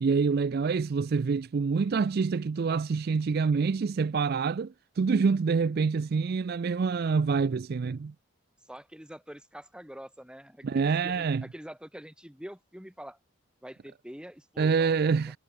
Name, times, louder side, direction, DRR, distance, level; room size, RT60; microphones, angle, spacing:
voice 1, 0.0-8.1 10.6-11.4 14.6-15.4, right 5 dB, 45° right, 0.4 m, -26 dB
voice 2, 8.7-13.2 13.6-15.3, equal, 5° right, 2.3 m, -45 dB
head